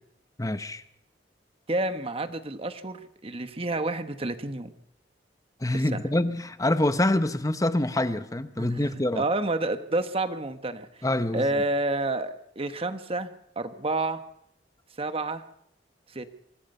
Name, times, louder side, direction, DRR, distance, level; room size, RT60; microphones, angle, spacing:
voice 1, 0.4-0.8 5.6-9.2 11.0-11.5, left 1 dB, 20° left, 11 dB, 0.9 m, -26 dB
voice 2, 1.7-4.7 5.9-6.0 8.6-10.9 11.3-13.3 13.6-14.2 15.0-15.4 16.1-16.3, right 2 dB, 30° right, 10 dB, 1.2 m, -29 dB
24.5 x 19.0 x 5.5 m, 0.74 s
head